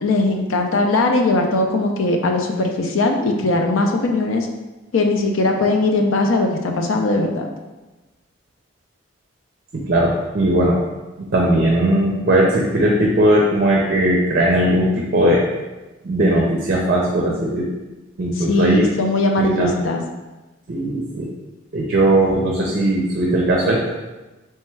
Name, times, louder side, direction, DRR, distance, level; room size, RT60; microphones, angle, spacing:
voice 1, 0.0-4.5 4.9-7.5 18.4-20.0, left 2 dB, 75° left, 3 dB, 0.5 m, -19 dB
voice 2, 9.7-10.8 11.2-15.5 16.0-17.7 18.2-18.9 19.4-19.7 20.7-21.3 21.7-23.9, right 1 dB, 50° right, -2 dB, 0.5 m, -18 dB
3.4 x 3.3 x 3.2 m, 1.1 s
head